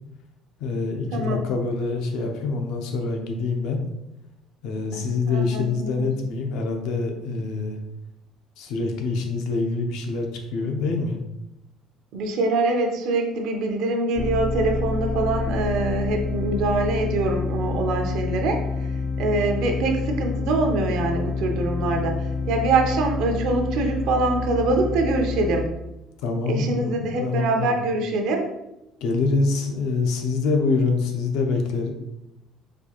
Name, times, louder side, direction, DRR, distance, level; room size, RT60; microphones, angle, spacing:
voice 1, 0.6-3.8 4.6-7.8 8.6-11.2 26.2-27.8 29.0-31.9, left 3 dB, 75° left, 4 dB, 0.6 m, -25 dB
voice 2, 1.1-1.4 4.9-6.1 12.1-18.9 19.2-25.7 26.5-28.5, right 2 dB, 75° right, 3 dB, 0.7 m, -24 dB
sound 1, 14.2-25.7, left 4 dB, 20° left, 0.4 m, -28 dB
4.3 x 2.4 x 2.9 m, 0.87 s
cardioid pair, 125°, 0 cm